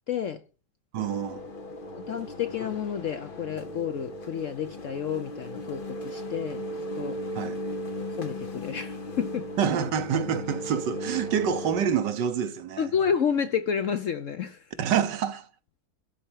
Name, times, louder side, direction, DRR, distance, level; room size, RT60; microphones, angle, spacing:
voice 1, 0.1-0.4 2.1-6.6 6.9-7.2 8.2-9.5 12.8-14.6, left 7 dB, 60° left, 0.8 m, -30 dB
voice 2, 0.9-1.4 7.3-7.6 9.6-12.9 14.8-15.5, right 8 dB, 75° right, 1.6 m, -27 dB
sound 1, 1.0-11.9, equal, 35° left, 1.2 m, -37 dB
12.0 x 4.4 x 8.4 m
omnidirectional pair, 1.9 m